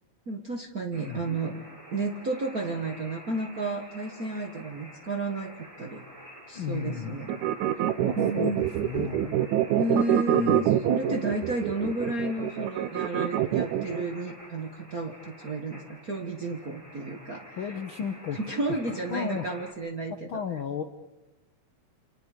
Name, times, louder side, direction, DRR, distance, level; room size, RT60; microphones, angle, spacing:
voice 1, 0.3-1.6 1.9-5.5 5.8-6.0 6.5-7.3 7.8-7.9 8.2-8.6 9.8-17.6 18.5-20.4, right 2 dB, 45° right, 2 dB, 1.2 m, -32 dB
sound 1, 0.9-19.7, equal, 10° right, 6.0 m, -48 dB
voice 2, 6.5-7.2 7.9-9.5 10.3-10.6 17.5-18.4 18.7-19.5 20.1-20.8, left 8 dB, 60° left, 6 dB, 1.3 m, -35 dB
sound 2, 7.3-14.0, right 11 dB, 70° right, 2.2 m, -25 dB
29.5 x 27.0 x 5.0 m, 1.0 s
omnidirectional pair, 3.6 m